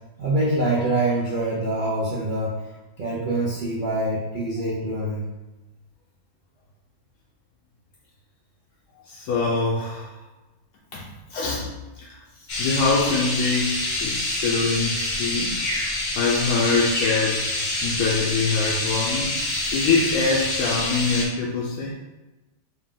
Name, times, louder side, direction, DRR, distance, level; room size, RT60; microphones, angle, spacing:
voice 1, 0.2-2.5 3.0-5.2, right 1 dB, 75° right, -6 dB, 0.4 m, -25 dB
voice 2, 9.0-10.3 10.9-21.9, left 4 dB, 75° left, -3 dB, 1.1 m, -25 dB
sound 1, 12.5-21.2, left 2 dB, 55° left, 0.5 m, -26 dB
4.1 x 2.4 x 3.7 m, 1.1 s
omnidirectional pair, 1.8 m